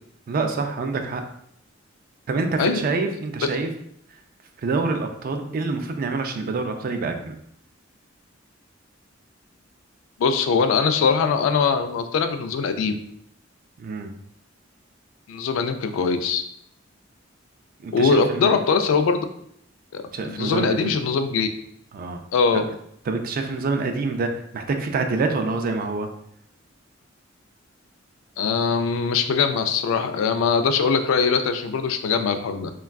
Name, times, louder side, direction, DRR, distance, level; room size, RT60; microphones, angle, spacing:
voice 1, 0.3-1.2 2.3-3.7 4.6-7.4 13.8-14.1 17.8-18.6 20.1-20.9 21.9-22.2 22.5-22.6 23.1-26.1, right 3 dB, 45° right, 5 dB, 0.3 m, -26 dB
voice 2, 10.2-12.9 15.3-16.4 17.9-19.3 19.9-21.5 22.3-22.6 28.4-32.7, left 5 dB, 75° left, 8 dB, 0.3 m, -22 dB
3.4 x 2.3 x 2.2 m, 0.72 s
head